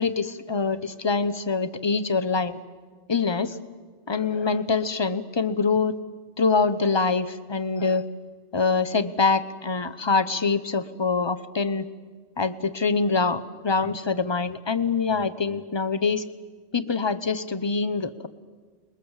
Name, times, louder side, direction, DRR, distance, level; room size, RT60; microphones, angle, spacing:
voice 1, 0.0-2.6 3.1-3.6 4.1-6.0 6.4-8.1 8.5-11.9 12.4-16.2 16.7-18.3, left 4 dB, 25° left, 12 dB, 0.8 m, -24 dB
28.5 x 21.5 x 7.3 m, 1.5 s
omnidirectional pair, 1.2 m